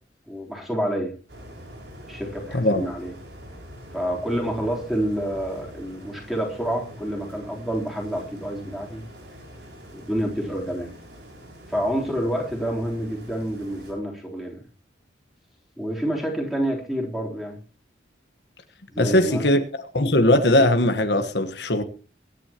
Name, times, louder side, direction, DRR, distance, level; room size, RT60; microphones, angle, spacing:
voice 1, 0.3-1.1 2.1-3.1 3.9-9.0 9.9-10.9 11.7-14.6 15.8-17.6 18.9-19.4 20.0-20.1, equal, ahead, 3.6 m, -28 dB
sound 1, 1.3-13.9, equal, 75° right, 5.9 m, -44 dB
voice 2, 2.5-2.9 19.0-19.6 19.9-21.8, left 1 dB, 70° left, 1.3 m, -19 dB
24.5 x 9.9 x 3.0 m
head